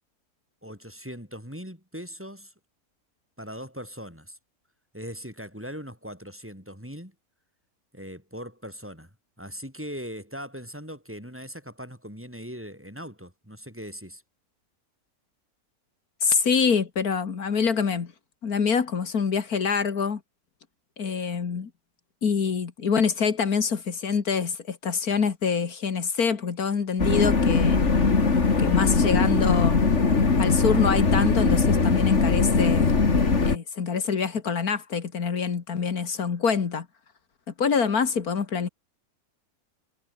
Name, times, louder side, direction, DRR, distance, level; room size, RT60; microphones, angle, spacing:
voice 1, 0.6-2.5 3.4-4.4 4.9-7.1 7.9-9.1 9.4-14.2, equal, 10° right, 7.8 m, -40 dB
voice 2, 16.2-18.1 18.4-20.2 21.0-21.7 22.2-27.8 28.6-29.8 30.4-32.9 33.5-36.9 37.5-38.7, left 6 dB, 80° left, 2.3 m, -25 dB
sound 1, 27.0-33.6, left 4 dB, 50° left, 2.7 m, -21 dB
omnidirectional pair, 1.6 m